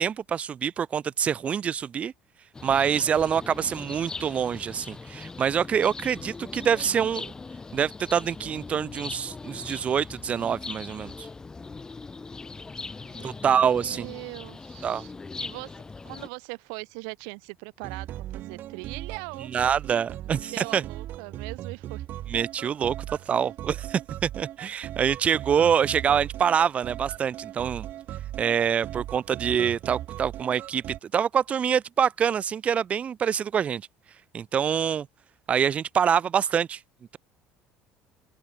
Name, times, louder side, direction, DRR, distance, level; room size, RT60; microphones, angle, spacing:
voice 1, 0.0-2.1 2.6-7.3 7.7-11.3 13.2-14.1 14.8-15.0 19.5-20.8 22.3-22.9 23.3-27.9 28.4-33.8 34.3-35.1 35.5-36.8, right 8 dB, 35° right, 1.0 m, -25 dB
sound 1, 2.5-16.3, left 4 dB, 15° left, 1.5 m, -40 dB
voice 2, 13.0-13.4 13.8-15.1 15.4-19.7 20.2-22.0, right 40 dB or more, 90° right, 1.5 m, -41 dB
sound 2, 17.8-31.0, right 13 dB, 55° right, 1.3 m, -38 dB
open air
cardioid pair, 125°, 4 cm